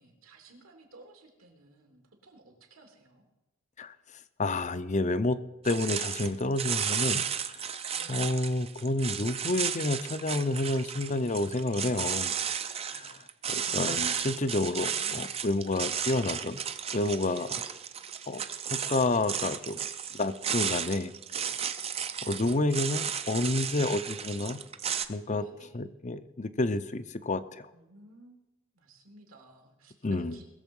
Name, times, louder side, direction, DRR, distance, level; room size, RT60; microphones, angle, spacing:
voice 1, 0.0-3.3 7.9-8.4 12.9-14.2 14.8-15.3 17.3-17.5 21.3-21.6 21.9-22.3 25.4-25.8 27.7-28.4 28.7-30.4, right 2 dB, 80° right, 3 dB, 2.9 m, -55 dB
voice 2, 4.4-5.4 5.6-7.2 7.5-7.7 8.1-12.4 12.9-13.2 13.7-16.6 16.9-17.5 18.3-18.4 18.7-19.8 20.1-21.1 22.3-24.6 25.1-25.4 25.7-27.7 30.0-30.4, left 2 dB, 35° left, 13 dB, 0.7 m, -29 dB
sound 1, 5.6-25.0, right 8 dB, 30° right, 0.6 m, -34 dB
21.0 x 7.3 x 5.4 m, 1.0 s
head